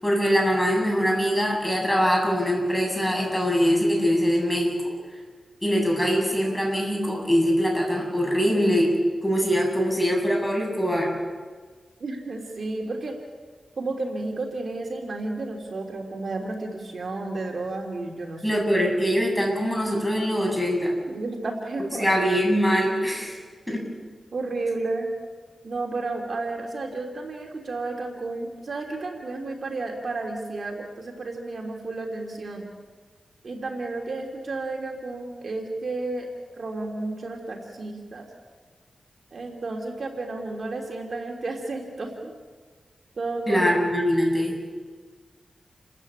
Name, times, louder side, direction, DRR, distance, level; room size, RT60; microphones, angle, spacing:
voice 1, 0.0-4.7 5.6-8.9 9.2-11.1 18.4-20.9 22.0-23.4 23.7-23.8 43.5-44.5, equal, 5° left, -1 dB, 8.0 m, -23 dB
voice 2, 12.0-13.1 13.8-18.6 21.1-22.1 24.3-25.1 25.6-32.6 33.4-36.3 36.6-38.3 39.3-42.3 43.2-43.6, right 3 dB, 60° right, 2 dB, 3.1 m, -32 dB
30.0 x 14.5 x 9.0 m, 1.5 s
wide cardioid pair, 85°, 0 cm